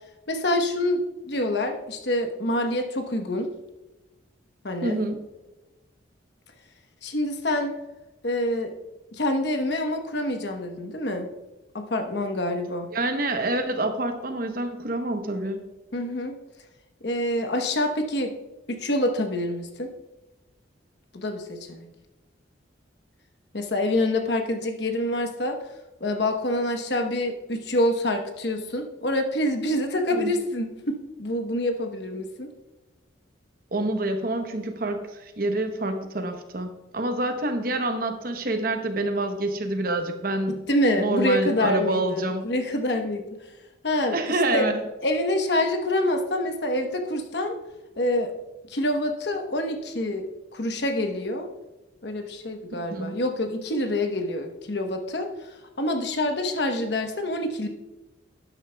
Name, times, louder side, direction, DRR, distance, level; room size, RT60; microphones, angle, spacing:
voice 1, 0.3-3.5 4.6-5.0 7.0-7.7 8.2-8.7 9.1-11.3 11.7-12.9 15.9-16.4 17.0-18.3 18.7-19.9 21.1-21.9 23.5-25.6 26.0-32.5 40.7-43.4 43.8-44.2 44.5-44.7 45.0-47.6 48.0-48.3 48.7-50.2 50.5-51.5 52.0-55.3 55.8-57.7, left 1 dB, 60° left, 5 dB, 1.0 m, -26 dB
voice 2, 4.8-5.2 12.9-15.6 30.1-30.3 33.7-40.7 41.0-42.4 44.1-44.8 52.9-53.2, right 2 dB, 50° right, 6 dB, 0.8 m, -27 dB
12.0 x 9.0 x 2.3 m, 1.1 s
head